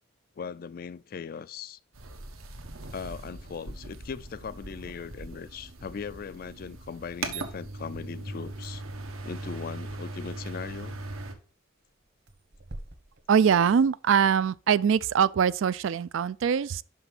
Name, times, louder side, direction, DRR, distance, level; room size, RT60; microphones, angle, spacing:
voice 1, 0.4-1.8 2.9-8.8 9.2-11.0, left 6 dB, 45° left, 0.3 m, -39 dB
sound 1, 1.9-11.3, right 2 dB, 85° right, 1.3 m, -40 dB
sound 2, 3.9-14.3, right 1 dB, 50° right, 1.2 m, -53 dB
voice 2, 13.3-16.8, right 7 dB, 65° right, 0.3 m, -23 dB
5.9 x 5.6 x 5.9 m
head